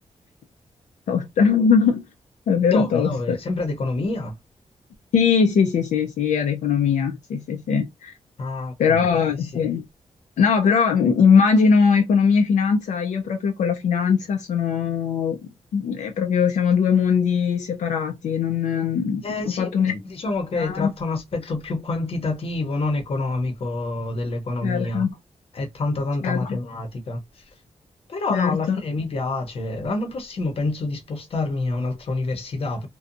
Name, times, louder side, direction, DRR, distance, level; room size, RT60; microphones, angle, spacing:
voice 1, 1.1-2.0 2.5-3.4 5.1-8.1 8.8-9.8 10.4-19.9 20.6-20.9 24.6-25.1 26.2-26.6 28.3-28.8, left 6 dB, 85° left, 0.5 m, -20 dB
voice 2, 2.5-4.4 8.4-9.6 19.2-25.1 25.5-27.4 28.1-32.9, left 2 dB, 50° left, 0.8 m, -27 dB
2.6 x 2.2 x 2.5 m
wide cardioid pair, 130°, 12 cm